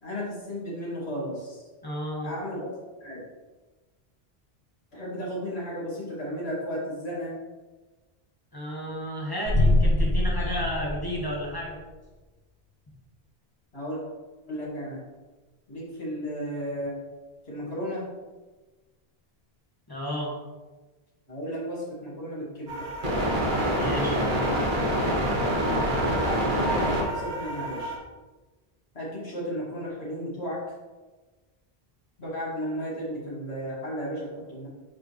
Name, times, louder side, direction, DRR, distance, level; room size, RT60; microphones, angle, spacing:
voice 1, 0.0-1.6 2.2-2.7 3.0-3.3 4.9-7.4 13.7-14.0 14.5-15.0 15.7-17.0 17.4-18.1 21.3-22.9 23.6-24.0 26.3-28.0 28.9-30.7 32.2-34.7, equal, 85° left, -7 dB, 2.5 m, -34 dB
voice 2, 1.8-2.3 8.5-11.8 19.9-20.3 23.6-24.2, equal, 20° left, -4 dB, 1.8 m, -32 dB
sound 1, 9.5-11.7, left 1 dB, 55° left, 1.1 m, -24 dB
sound 2, 22.7-28.0, equal, 50° right, 1.4 m, -26 dB
8.9 x 5.0 x 3.2 m, 1.2 s
omnidirectional pair, 1.1 m